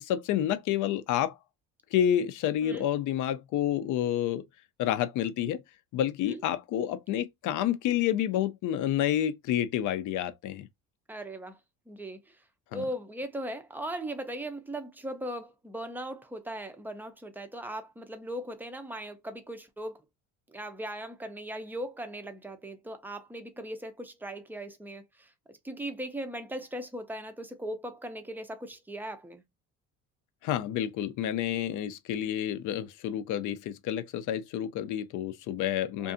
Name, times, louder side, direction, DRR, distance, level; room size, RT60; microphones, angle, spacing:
voice 1, 0.0-1.4 1.9-4.4 4.8-5.6 5.9-10.7 12.7-12.8 30.4-36.1, left 11 dB, 55° left, 0.5 m, -29 dB
voice 2, 11.1-11.6 11.9-12.4 12.7-20.0 20.5-29.4 36.0-36.1, right 1 dB, 5° right, 0.5 m, -39 dB
2.6 x 2.4 x 2.5 m
cardioid pair, 110°, 36 cm